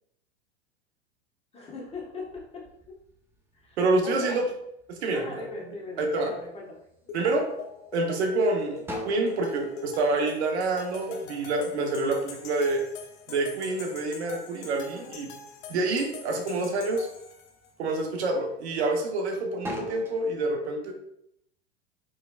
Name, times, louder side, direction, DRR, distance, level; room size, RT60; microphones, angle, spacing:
voice 1, 1.5-3.0 3.5-4.4 5.1-7.1 14.9-15.3, left 3 dB, 15° left, -4 dB, 1.1 m, -41 dB
sound 1, 1.9-3.8 4.3-5.0 5.5-6.1 6.5-7.4 7.9-8.0 8.4-11.3 11.6-13.9 14.3-15.3 15.7-16.3 16.8-17.0 17.5-19.2 19.5-20.2, equal, 5° right, 0.4 m, -40 dB
voice 2, 3.8-4.5 4.9-5.5 6.0-6.3 7.1-7.5 7.9-12.8 13.3-15.3 15.7-17.1 17.8-20.9, right 2 dB, 70° right, 3 dB, 0.8 m, -27 dB
sound 2, 7.1-17.7, left 5 dB, 50° left, 0.7 m, -44 dB
3.8 x 3.2 x 2.2 m, 0.77 s
hypercardioid pair, 95°, 34 cm